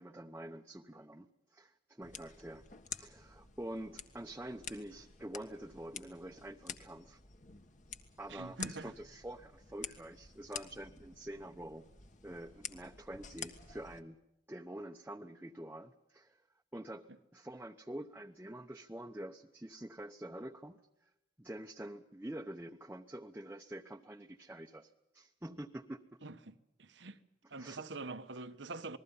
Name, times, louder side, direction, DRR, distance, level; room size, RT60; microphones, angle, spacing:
voice 1, 0.0-7.2 8.2-11.8 12.2-14.2 14.5-16.4 16.7-21.1 21.4-26.0 27.6-27.8, right 1 dB, 10° right, 0.8 m, -47 dB
sound 1, 2.0-14.0, left 6 dB, 45° left, 1.5 m, -49 dB
voice 2, 8.3-8.9 26.2-27.2 27.5-29.0, right 3 dB, 90° right, 1.4 m, -45 dB
28.0 x 20.5 x 5.5 m
head